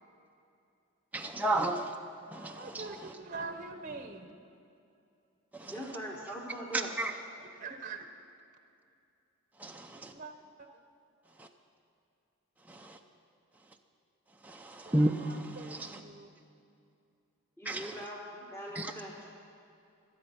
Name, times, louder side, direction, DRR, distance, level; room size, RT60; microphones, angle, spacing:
voice 1, 1.1-1.9 2.3-2.8 5.6-5.7 7.0-7.1 9.6-10.1 12.7-13.0 14.4-15.9 17.7-17.9 18.8-18.9, right 1 dB, 5° right, 2 dB, 0.6 m, -32 dB
voice 2, 2.4-4.4 7.4-8.1 10.1-10.3 10.6-10.7 14.8-16.3, right 3 dB, 35° right, 6 dB, 0.9 m, -44 dB
voice 3, 5.7-7.0 17.6-19.3, equal, 10° left, -2 dB, 1.4 m, -42 dB
25.0 x 8.7 x 5.8 m, 2.6 s
head